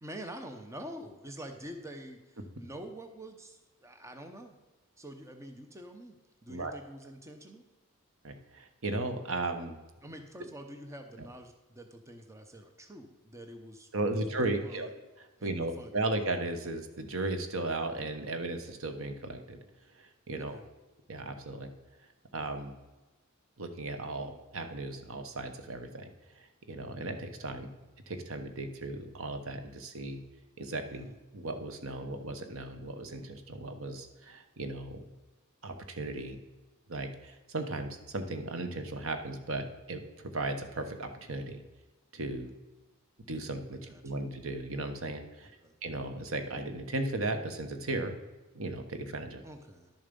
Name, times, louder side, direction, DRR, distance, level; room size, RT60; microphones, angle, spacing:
voice 1, 0.0-4.6 5.0-7.6 10.0-14.9 15.4-15.9 20.4-20.7 30.9-31.1 43.7-44.2 45.6-45.7 49.4-49.9, right 1 dB, 15° right, 5 dB, 0.8 m, -47 dB
voice 2, 8.2-9.8 13.9-14.9 15.2-19.6 20.0-20.6 21.1-21.7 22.3-22.7 23.6-26.1 26.3-27.7 28.1-30.2 30.6-31.1 31.3-35.0 35.6-36.4 36.9-41.6 42.1-42.5 43.3-45.5 45.8-48.1 48.5-49.4, right 2 dB, 65° right, 7 dB, 1.1 m, -36 dB
11.5 x 7.0 x 5.3 m, 1.1 s
head